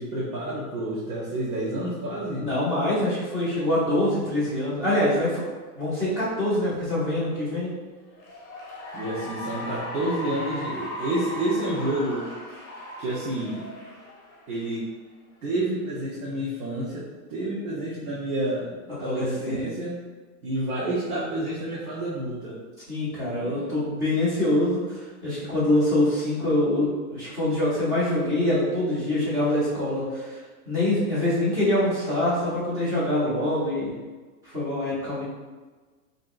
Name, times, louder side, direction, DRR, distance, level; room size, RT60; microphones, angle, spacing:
voice 1, 0.0-2.5 8.9-12.3 13.0-13.6 14.5-14.9 15.4-18.7 19.0-20.0 20.4-22.6 23.4-23.7, right 1 dB, 75° right, -7 dB, 1.0 m, -29 dB
voice 2, 2.4-5.4 5.7-7.7 18.9-19.6 22.9-30.4 30.7-33.9 34.4-35.3, left 1 dB, 10° right, -10 dB, 0.4 m, -25 dB
Cheering / Applause, 8.1-14.8, left 1 dB, 25° left, 0.7 m, -37 dB
3.5 x 2.7 x 2.4 m, 1.3 s
supercardioid pair, 160°, 46 cm